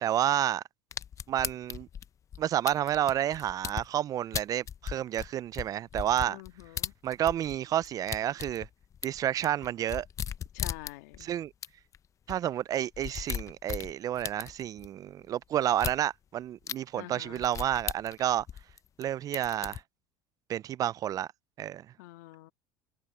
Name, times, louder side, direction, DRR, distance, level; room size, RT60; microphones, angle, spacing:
voice 1, 0.0-0.6 1.3-1.9 2.4-6.4 7.0-8.7 9.0-10.1 11.2-11.5 12.3-18.5 19.0-19.8 20.5-21.3 21.6-21.9, right 11 dB, 40° right, 0.3 m, -30 dB
sound 1, 0.9-3.9 4.3-7.6 7.8-11.2 11.6-11.7 11.9-12.0 12.3-12.4 12.7-14.9 15.7-16.0 16.7-16.8 17.4-19.0 19.3-19.8, left 9 dB, 35° left, 0.7 m, -37 dB
voice 2, 6.3-6.9 10.5-11.3 16.9-17.4 22.0-22.5, left 19 dB, 85° left, 1.7 m, -46 dB
supercardioid pair, 100°, 9 cm